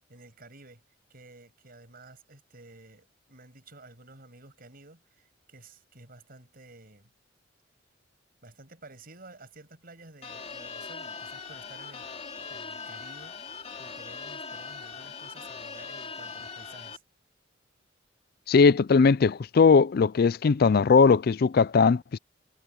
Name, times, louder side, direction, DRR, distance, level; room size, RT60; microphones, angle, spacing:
voice 1, 0.1-0.8 1.1-7.1 8.4-12.1 12.5-17.0, right 2 dB, 50° right, 6.8 m, -52 dB
sound 1, 10.2-17.0, left 5 dB, 35° left, 2.7 m, -40 dB
voice 2, 18.5-22.2, left 5 dB, 55° left, 0.4 m, -19 dB
head